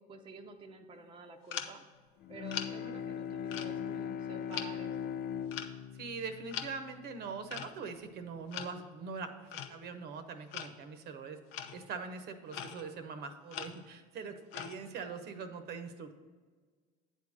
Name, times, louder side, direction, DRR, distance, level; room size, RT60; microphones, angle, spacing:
voice 1, 0.1-1.8 2.3-5.2, right 3 dB, 25° right, 3 dB, 0.7 m, -50 dB
sound 1, 1.5-1.9 2.5-2.7 3.5-4.2 4.5-4.7 5.5-5.8 6.5-6.8 7.5-7.7 8.5-8.8 9.5-9.9 10.5-10.7 11.5-11.9 12.5-13.0 13.5-13.9 14.5-14.9, left 9 dB, 70° left, 0.7 m, -42 dB
Bowed string instrument, 2.2-7.6, left 8 dB, 45° left, 0.4 m, -40 dB
voice 2, 6.0-16.1, right 5 dB, 55° right, 8 dB, 0.9 m, -43 dB
9.1 x 3.6 x 6.4 m, 1.5 s
supercardioid pair, 100°, 20 cm